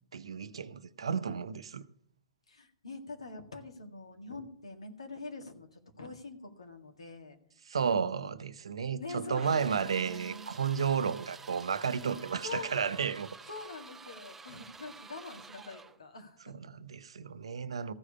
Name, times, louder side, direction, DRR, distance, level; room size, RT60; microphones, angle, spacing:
voice 1, 0.1-1.9 7.7-13.3 16.7-17.9, right 6 dB, 70° right, 0.7 m, -32 dB
voice 2, 2.5-7.4 7.8-8.5 9.0-10.5 12.4-12.9 13.5-16.5, left 3 dB, 80° left, 1.8 m, -45 dB
sound 1, 9.3-16.0, right 4 dB, 10° right, 0.6 m, -50 dB
14.5 x 4.9 x 8.4 m
figure-of-eight pair, 110°, 3 cm